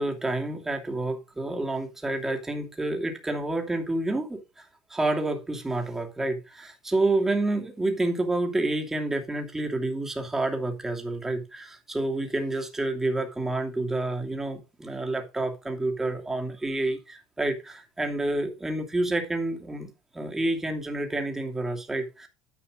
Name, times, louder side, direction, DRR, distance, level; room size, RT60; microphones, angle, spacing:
voice 1, 0.0-4.6 4.9-22.3, right 2 dB, 10° right, 2.7 m, -29 dB
10.5 x 5.3 x 5.1 m
hypercardioid pair, 80°, 3 cm